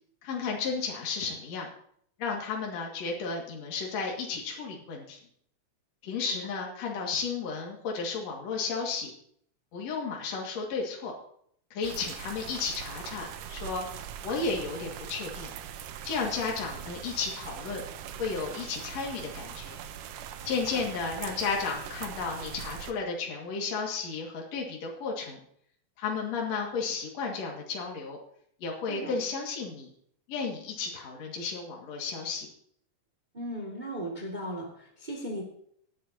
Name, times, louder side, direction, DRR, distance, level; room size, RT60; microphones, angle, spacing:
voice 1, 0.2-1.7 2.2-5.2 6.0-9.1 9.7-11.1 11.7-15.5 16.0-17.8 18.2-19.8 20.4-25.4 26.0-28.2 28.6-29.9 30.3-32.5, left 4 dB, 60° left, -1 dB, 3.1 m, -33 dB
sound 1, 11.8-22.9, right 9 dB, 90° right, 2.4 m, -41 dB
voice 2, 28.9-29.2 33.3-35.4, right 1 dB, 15° right, -1 dB, 1.9 m, -37 dB
18.5 x 11.0 x 2.8 m, 0.66 s
omnidirectional pair, 3.6 m